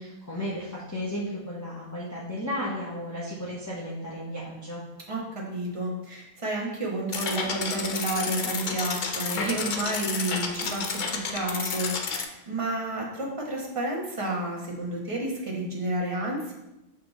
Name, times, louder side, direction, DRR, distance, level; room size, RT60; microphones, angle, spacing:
voice 1, 0.0-4.8, equal, 15° left, -7 dB, 1.1 m, -34 dB
voice 2, 5.1-16.5, right 1 dB, 30° right, -2 dB, 1.3 m, -31 dB
sound 1, 7.1-12.2, left 5 dB, 55° left, 0.7 m, -31 dB
5.6 x 5.4 x 4.0 m, 0.93 s
omnidirectional pair, 1.0 m